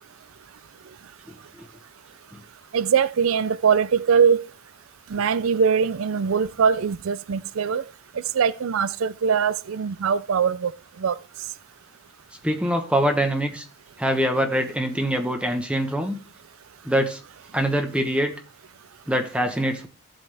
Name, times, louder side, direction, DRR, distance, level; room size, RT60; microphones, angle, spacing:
voice 1, 1.3-1.7 12.4-13.6 14.0-16.2 16.8-17.2 17.5-18.3 19.1-19.9, equal, 5° right, 1.1 m, -24 dB
voice 2, 2.7-4.4 5.1-7.8 8.3-10.7 11.0-11.1, right 6 dB, 70° right, 0.4 m, -21 dB
15.5 x 7.9 x 3.4 m
head